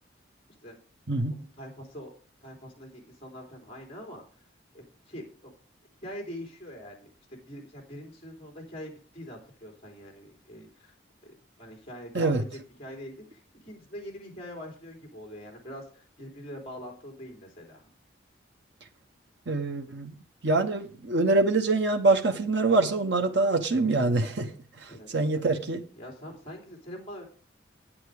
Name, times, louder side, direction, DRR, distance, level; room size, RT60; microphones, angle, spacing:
voice 1, 1.3-2.1 2.4-4.2 4.7-5.5 6.0-10.9 11.2-17.9 24.9-25.4 26.0-27.2, equal, 30° left, 3.3 m, -44 dB
voice 2, 19.5-20.1 20.4-24.5 24.8-25.8, right 3 dB, 70° right, 1.0 m, -25 dB
8.9 x 8.6 x 4.8 m
head